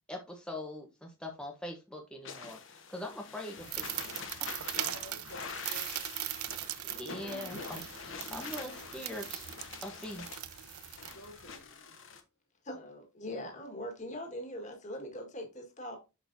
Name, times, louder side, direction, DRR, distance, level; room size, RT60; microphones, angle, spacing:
voice 1, 0.1-3.9 4.4-4.7 7.0-9.4 9.8-10.3, left 1 dB, 5° left, 0.9 m, -42 dB
sound 1, 2.2-12.2, left 5 dB, 60° left, 1.2 m, -45 dB
sound 2, 3.6-11.6, right 13 dB, 85° right, 0.6 m, -40 dB
voice 2, 4.8-6.1 11.1-12.0, left 1 dB, 75° left, 2.3 m, -50 dB
voice 3, 12.6-16.0, left 1 dB, 35° left, 1.7 m, -41 dB
6.5 x 6.3 x 2.6 m
head